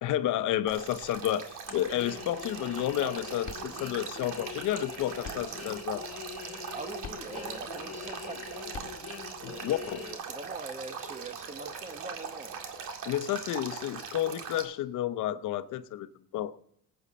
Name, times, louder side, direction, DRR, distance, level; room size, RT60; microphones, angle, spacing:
voice 1, 0.0-6.1 9.4-10.0 13.1-16.1 16.3-16.6, left 12 dB, 85° left, 0.8 m, -31 dB
Male speech man speaking / Stream / Trickle dribble, 0.7-14.6, right 6 dB, 85° right, 2.1 m, -41 dB
sound 1, 1.7-10.2, left 7 dB, 55° left, 1.5 m, -43 dB
voice 2, 6.7-8.9 9.5-12.6, right 3 dB, 25° right, 1.1 m, -44 dB
19.5 x 8.9 x 4.2 m
cardioid pair, 90°, 30 cm